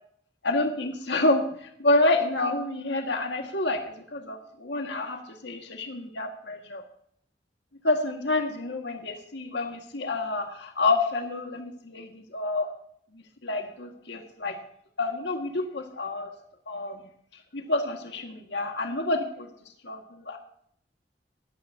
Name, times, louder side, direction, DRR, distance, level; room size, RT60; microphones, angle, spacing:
voice 1, 0.4-6.8 7.8-12.7 13.1-14.6 15.0-16.3 16.7-17.0 17.5-19.5 19.8-20.4, left 2 dB, 85° left, 3 dB, 1.9 m, -28 dB
18.5 x 13.0 x 2.8 m, 0.66 s
head